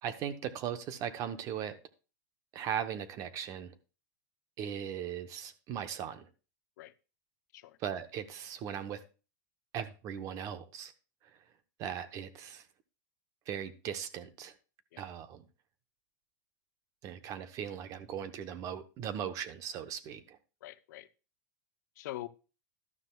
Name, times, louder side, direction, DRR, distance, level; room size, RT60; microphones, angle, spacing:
voice 1, 0.0-1.8 2.5-3.7 4.6-6.3 7.8-9.0 9.7-10.9 11.8-12.7 13.5-14.5 15.0-15.4 17.0-20.4, right 9 dB, 35° right, 0.9 m, -38 dB
voice 2, 20.6-21.1 22.0-22.3, left 16 dB, 70° left, 0.7 m, -44 dB
12.5 x 12.0 x 2.3 m
supercardioid pair, 155°, 10 cm